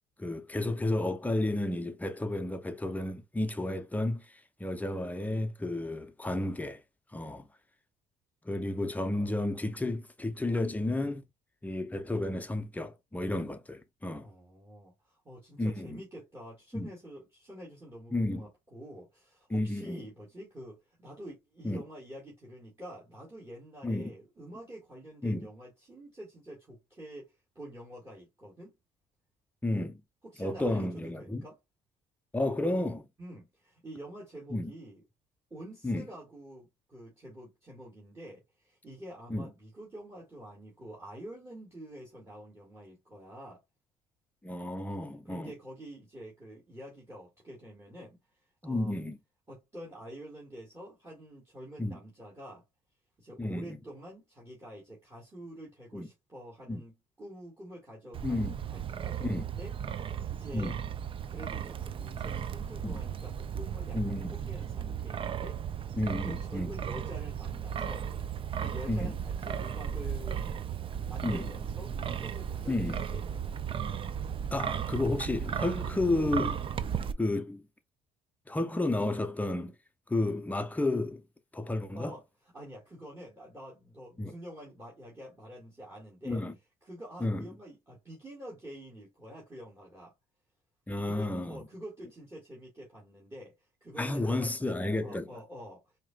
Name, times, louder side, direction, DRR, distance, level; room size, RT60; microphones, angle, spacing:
voice 1, 0.2-6.8 7.1-7.5 8.4-11.2 11.6-14.3 15.6-16.0 16.7-16.9 18.1-18.5 19.5-20.0 21.6-21.8 23.8-24.1 25.2-25.5 29.6-30.0 30.4-31.4 32.3-33.1 34.5-34.7 35.8-36.1 39.3-39.5 44.4-45.5 48.6-49.2 51.8-52.0 53.4-53.8 55.9-56.1 56.7-56.8 58.2-58.6 59.2-59.5 60.5-60.8 62.8-63.0 63.9-64.3 65.9-66.7 68.9-69.1 71.2-71.5 72.6-73.0 74.5-76.6 77.2-77.6 78.5-79.7 80.1-81.2 81.5-82.1 84.2-84.3 86.2-86.5 87.2-87.5 90.9-91.6 94.0-95.4, left 2 dB, 10° left, 0.6 m, -32 dB
voice 2, 14.2-28.7 30.2-31.6 33.2-35.0 35.5-43.6 45.2-49.0 49.5-52.6 53.2-58.4 58.7-60.8 61.3-70.4 70.8-73.4 81.9-82.2 82.5-86.4 86.8-90.1 91.1-94.7 95.0-95.8, equal, 15° right, 1.9 m, -47 dB
Wind, 58.1-77.1, right 8 dB, 30° right, 0.4 m, -35 dB
4.7 x 2.9 x 2.3 m
cardioid pair, 110°, 17 cm